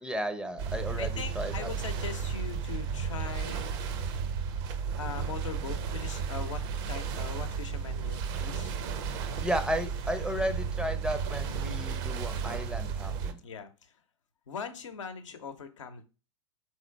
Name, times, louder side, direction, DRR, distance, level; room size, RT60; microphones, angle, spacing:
voice 1, 0.0-1.7 9.4-13.4, equal, 5° right, 9 dB, 0.5 m, -34 dB
sound 1, 0.6-13.3, right 6 dB, 50° right, 0.7 m, -33 dB
voice 2, 1.0-3.8 5.0-8.7 13.4-13.7 14.5-16.0, left 6 dB, 80° left, 7 dB, 0.7 m, -41 dB
3.7 x 3.0 x 4.4 m, 0.33 s
hypercardioid pair, 95°, 16 cm